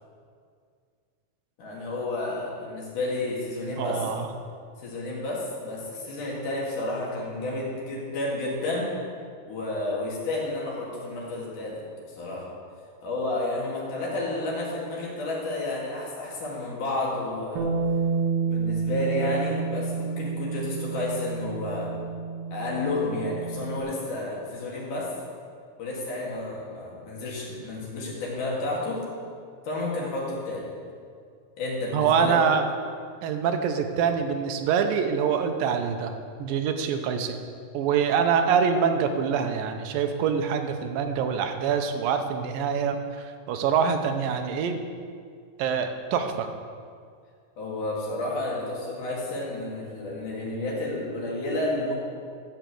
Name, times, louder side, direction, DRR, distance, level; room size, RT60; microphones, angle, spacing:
voice 1, 1.6-4.0 4.8-8.9 9.5-11.8 12.1-12.5 13.0-17.7 18.4-21.9 22.5-25.1 25.8-29.0 29.6-30.7 31.6-32.4 47.6-52.0, left 2 dB, 65° left, -4 dB, 4.0 m, -31 dB
voice 2, 3.8-4.3 31.9-32.7 33.2-36.1 36.4-37.4 37.7-44.8 45.6-46.5, right 7 dB, 90° right, 6 dB, 2.6 m, -25 dB
Bass guitar, 17.6-23.8, right 5 dB, 60° right, 1.8 m, -29 dB
13.5 x 6.0 x 7.7 m, 2.2 s
omnidirectional pair, 3.9 m